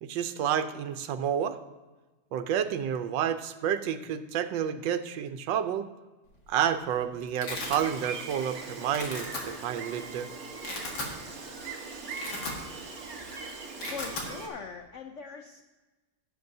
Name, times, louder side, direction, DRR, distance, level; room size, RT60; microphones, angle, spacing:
voice 1, 0.0-1.6 2.3-5.9 6.5-10.3, right 9 dB, 80° right, 10 dB, 1.4 m, -30 dB
Domestic sounds home sounds, 6.3-6.7 7.0-7.8 8.3-8.5 8.8-9.4 10.0-10.1 10.5-11.1 11.6-11.7 12.0-12.9 13.2-13.4 13.6-14.3, left 2 dB, 65° left, 2.1 m, -37 dB
Gull seagull, 7.6-14.5, right 4 dB, 50° right, 1.8 m, -40 dB
voice 2, 13.9-15.6, left 5 dB, 80° left, 5 dB, 0.6 m, -41 dB
15.5 x 7.3 x 2.7 m, 1.2 s
omnidirectional pair, 2.0 m